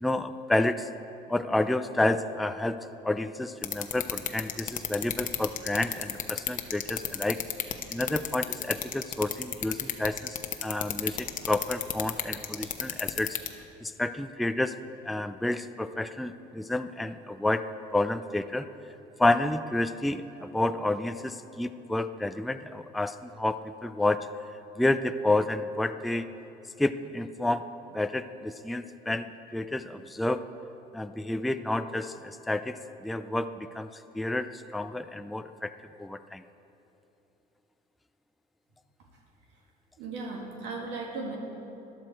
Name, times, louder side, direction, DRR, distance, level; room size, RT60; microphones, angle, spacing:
voice 1, 0.0-0.9 1.3-7.4 7.9-10.4 10.6-13.4 13.8-14.8 15.0-17.6 17.9-18.7 19.2-24.3 24.8-26.3 26.8-27.7 27.9-30.4 30.9-35.7 36.0-36.4, left 2 dB, ahead, 10 dB, 0.3 m, -30 dB
sound 1, 3.6-13.5, left 10 dB, 45° left, 0.9 m, -30 dB
voice 2, 40.0-41.4, right 3 dB, 85° right, -1 dB, 2.2 m, -36 dB
14.0 x 11.0 x 4.5 m, 3.0 s
cardioid pair, 105°, 18 cm